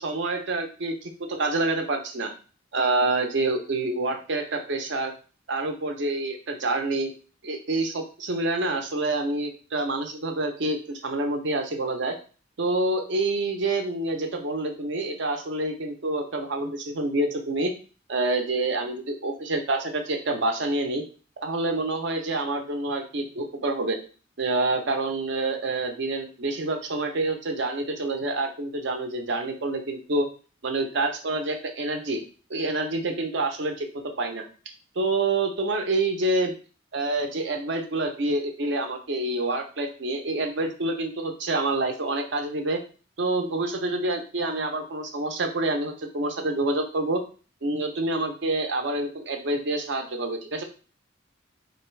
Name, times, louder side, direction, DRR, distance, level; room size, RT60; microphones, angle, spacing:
voice 1, 0.0-2.3 2.7-5.1 5.5-7.1 7.4-12.2 12.6-17.7 18.1-21.0 21.4-24.0 24.4-30.3 30.6-32.2 32.5-33.9 34.2-34.4 35.0-36.5 36.9-42.8 43.2-47.2 47.6-50.6, right 2 dB, 65° right, 4 dB, 0.6 m, -27 dB
3.3 x 2.6 x 3.1 m, 0.37 s
head